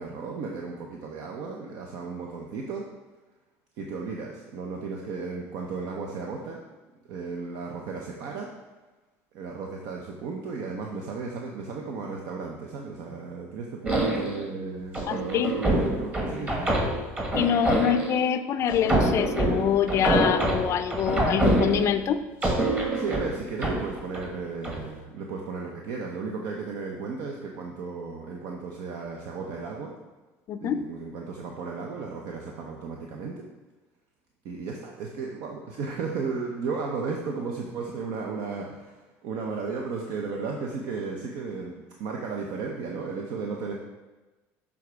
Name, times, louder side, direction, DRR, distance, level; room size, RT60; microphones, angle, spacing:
voice 1, 0.0-2.9 3.8-6.6 7.1-8.5 9.3-17.0 22.9-29.9 30.6-33.5 34.4-43.7, right 4 dB, 65° right, 0 dB, 0.7 m, -34 dB
sound 1, 13.9-14.5 14.9-18.2 18.7-22.0 22.4-24.3 24.6-24.9, right 1 dB, 20° right, 1.4 m, -26 dB
voice 2, 15.1-15.5 17.3-22.2 30.5-30.8, left 8 dB, 45° left, 11 dB, 0.4 m, -25 dB
7.0 x 3.5 x 4.7 m, 1.2 s
supercardioid pair, 110°, 7 cm